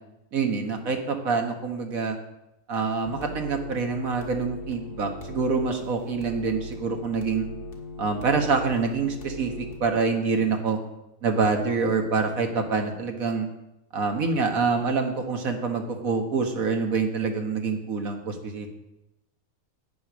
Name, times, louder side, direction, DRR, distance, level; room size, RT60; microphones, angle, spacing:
voice 1, 0.3-2.2 2.7-7.5 8.0-10.8 11.2-13.5 13.9-18.7, right 4 dB, 70° right, 4 dB, 1.8 m, -26 dB
sound 1, 3.0-9.8, left 1 dB, 40° left, 1.8 m, -39 dB
9.5 x 8.7 x 6.1 m, 0.90 s
omnidirectional pair, 1.5 m